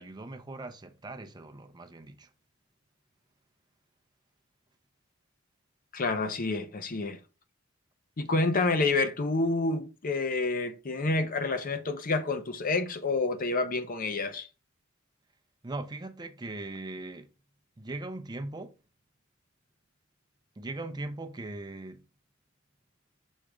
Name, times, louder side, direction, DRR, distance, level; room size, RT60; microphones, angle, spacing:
voice 1, 0.0-2.3 15.6-17.3 17.8-18.8 20.6-22.0, right 2 dB, 20° right, 0.6 m, -39 dB
voice 2, 5.9-7.2 8.2-14.5, left 3 dB, 45° left, 0.7 m, -28 dB
6.4 x 3.4 x 4.9 m
head